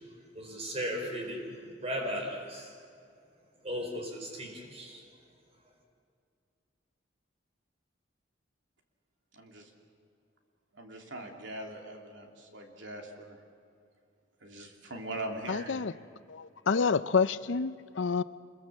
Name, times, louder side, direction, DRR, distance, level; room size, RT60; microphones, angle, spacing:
voice 1, 0.3-1.4 1.8-2.7 3.6-5.0, equal, 30° right, 4.3 m, -36 dB
voice 2, 9.3-9.7 10.7-13.4 14.4-15.9, right 1 dB, 75° right, 2.9 m, -41 dB
voice 3, 15.5-15.9 16.3-18.2, left 5 dB, 75° left, 0.6 m, -28 dB
26.5 x 21.5 x 7.3 m
head